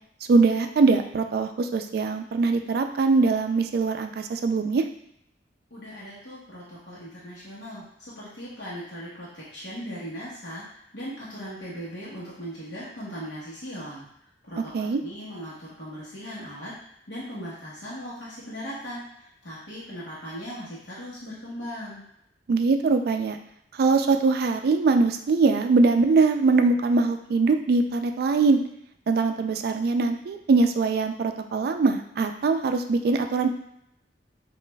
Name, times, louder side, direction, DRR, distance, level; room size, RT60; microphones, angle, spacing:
voice 1, 0.3-4.8 14.6-15.0 22.5-23.4 23.8-28.6 29.1-33.5, right 4 dB, 60° right, 7 dB, 0.3 m, -22 dB
voice 2, 5.7-10.6 10.9-14.0 14.5-16.7 17.1-22.0, equal, 80° left, -7 dB, 1.0 m, -38 dB
5.1 x 2.4 x 2.2 m, 0.77 s
head